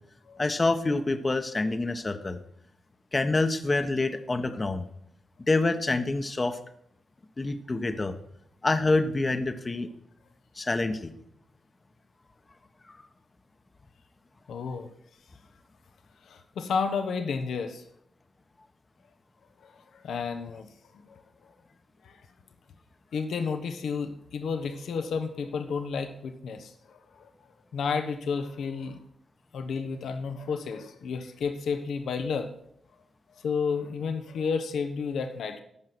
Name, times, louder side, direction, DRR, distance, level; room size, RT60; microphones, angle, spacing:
voice 1, 0.4-2.4 3.1-4.8 5.5-6.6 7.4-8.2 8.6-9.9 10.6-11.1 12.9-13.0, left 2 dB, 35° left, 9 dB, 1.0 m, -26 dB
voice 2, 14.5-14.9 16.3-17.8 20.0-20.7 22.0-22.1 23.1-27.0 27.7-29.0 29.5-32.5 33.4-35.6, left 5 dB, 80° left, 7 dB, 1.0 m, -31 dB
14.0 x 5.5 x 6.1 m, 0.73 s
supercardioid pair, 55°, 0 cm